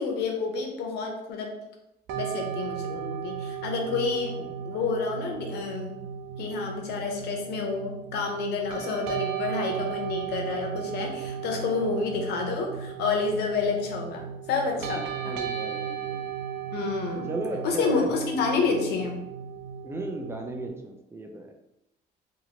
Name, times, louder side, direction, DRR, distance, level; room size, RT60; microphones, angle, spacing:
voice 1, 0.0-1.6 2.1-6.0 6.4-15.3 16.7-17.3 17.6-19.2, left 4 dB, 75° left, 1 dB, 0.7 m, -29 dB
sound 1, 2.1-20.7, right 9 dB, 90° right, 0.4 m, -35 dB
voice 2, 15.1-16.2 17.3-18.1 18.7-18.9 19.8-21.5, right 2 dB, 15° right, 2 dB, 0.4 m, -36 dB
2.8 x 2.5 x 2.8 m, 0.86 s
cardioid pair, 110°, 17 cm